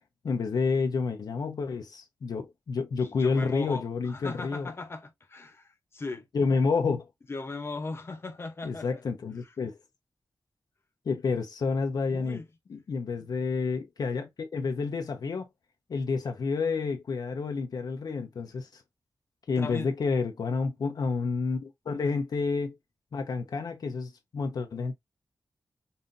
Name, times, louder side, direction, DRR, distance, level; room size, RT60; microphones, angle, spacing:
voice 1, 0.2-4.7 6.3-7.1 8.6-9.8 11.1-12.4 12.7-15.5 15.9-18.8 19.5-22.8 23.1-24.9, left 4 dB, 80° left, 0.7 m, -29 dB
voice 2, 3.0-6.3 7.3-9.0 9.4-9.5 12.1-12.5 19.6-19.9, left 3 dB, 40° left, 0.8 m, -38 dB
5.5 x 2.7 x 2.6 m
wide cardioid pair, 140°, 7 cm